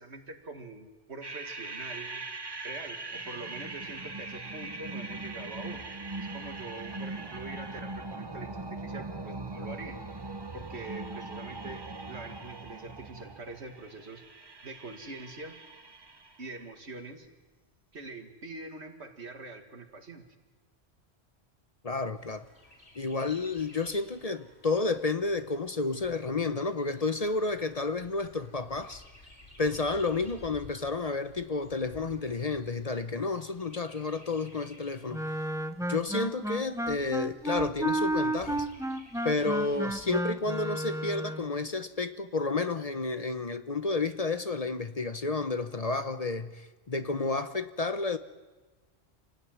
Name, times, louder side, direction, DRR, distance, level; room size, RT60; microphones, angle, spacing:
voice 1, 0.0-2.3 2.6-5.8 6.2-10.0 10.5-14.2 14.6-15.6 16.4-17.3 17.9-20.2, right 3 dB, 85° right, 2.4 m, -44 dB
sound 1, 1.2-16.5, right 2 dB, 25° right, 0.9 m, -41 dB
voice 2, 21.8-22.4 23.0-29.0 29.6-35.3 35.9-38.7 39.2-48.2, left 3 dB, 40° left, 0.9 m, -31 dB
Chirp tweet, 22.2-40.2, left 1 dB, 85° left, 5.1 m, -55 dB
Wind instrument woodwind instrument, 35.1-41.5, right 1 dB, 5° right, 0.7 m, -32 dB
27.0 x 16.5 x 9.4 m
omnidirectional pair, 1.1 m